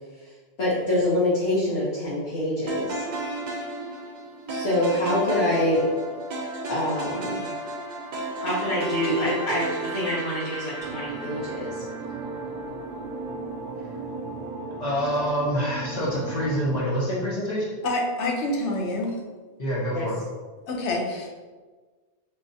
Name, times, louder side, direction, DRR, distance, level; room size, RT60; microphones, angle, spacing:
voice 1, 0.6-3.0 4.5-5.9 6.7-7.5 8.4-11.8 19.9-20.1, left 1 dB, 65° left, -10 dB, 1.2 m, -25 dB
sound 1, 2.7-12.9, right 2 dB, 50° right, 0.6 m, -33 dB
sound 2, 10.8-16.8, right 3 dB, 90° right, 0.9 m, -36 dB
voice 2, 14.8-17.8 19.6-20.2, equal, 40° left, -5 dB, 0.9 m, -26 dB
voice 3, 17.8-19.2 20.7-21.3, left 2 dB, 80° left, 0 dB, 1.0 m, -27 dB
3.7 x 2.8 x 2.6 m, 1.4 s
omnidirectional pair, 1.2 m